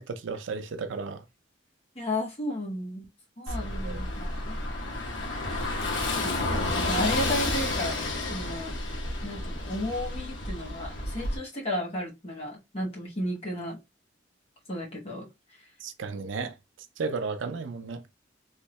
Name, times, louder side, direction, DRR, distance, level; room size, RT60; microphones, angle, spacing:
voice 1, 0.1-1.2 3.5-4.0 15.8-16.6 17.0-18.1, right 4 dB, 90° right, 0.5 m, -34 dB
voice 2, 1.9-3.1 3.4-4.6 5.6-8.0 8.3-8.8 9.2-13.8 14.7-15.3, left 1 dB, 35° left, 1.2 m, -34 dB
Car passing by / Engine, 3.5-11.4, left 2 dB, 85° left, 1.0 m, -31 dB
3.3 x 2.7 x 3.0 m
head